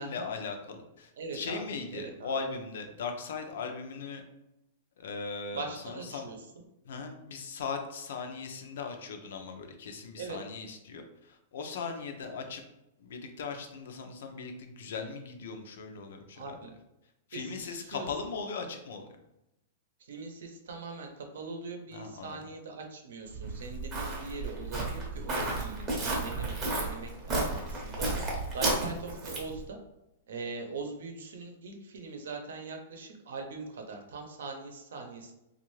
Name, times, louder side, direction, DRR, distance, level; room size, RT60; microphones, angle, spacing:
voice 1, 0.0-4.2 5.0-6.3 6.8-12.6 13.0-16.6 17.3-19.1 21.9-22.4, left 5 dB, 65° left, 5 dB, 0.5 m, -39 dB
voice 2, 1.2-1.7 1.9-2.3 5.5-6.4 10.2-10.4 16.3-16.7 17.3-18.1 20.1-29.8 30.3-35.3, right 3 dB, 85° right, 3 dB, 0.7 m, -41 dB
Walk footsteps, 23.3-29.6, right 2 dB, 15° right, 0.6 m, -33 dB
3.2 x 2.4 x 3.1 m, 0.89 s
supercardioid pair, 175°, 0 cm